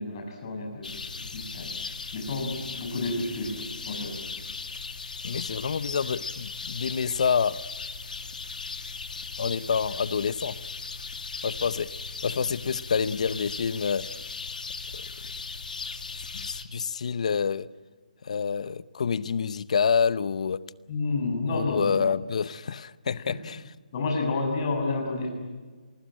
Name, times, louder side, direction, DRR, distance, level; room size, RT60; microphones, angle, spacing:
voice 1, 0.0-1.7 2.1-4.1 20.9-22.0 23.9-25.3, left 3 dB, 30° left, 6.6 m, -30 dB
sound 1, 0.8-16.6, left 4 dB, 75° left, 2.4 m, -38 dB
voice 2, 5.2-7.6 9.4-10.6 11.4-11.9 12.2-14.1 14.9-15.0 16.3-17.7 18.2-20.6 21.5-23.6, left 6 dB, 50° left, 0.8 m, -27 dB
27.0 x 20.5 x 8.9 m
hypercardioid pair, 170°, 4 cm